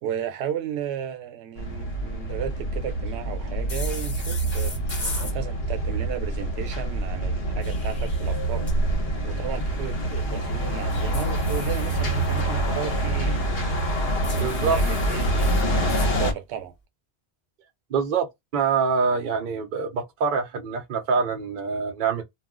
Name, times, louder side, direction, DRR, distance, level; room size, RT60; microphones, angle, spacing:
voice 1, 0.0-4.7 5.2-8.7 9.2-13.7 14.2-16.7, right 9 dB, 90° right, 0.8 m, -34 dB
sound 1, 1.6-16.3, right 1 dB, 70° left, 1.0 m, -26 dB
sound 2, 3.7-5.4 7.4-8.7 10.9-12.4 14.2-16.1, left 3 dB, 45° left, 1.1 m, -38 dB
voice 2, 14.4-14.8 17.9-18.3 18.5-22.2, right 5 dB, 55° right, 0.7 m, -25 dB
2.3 x 2.2 x 3.5 m
omnidirectional pair, 1.1 m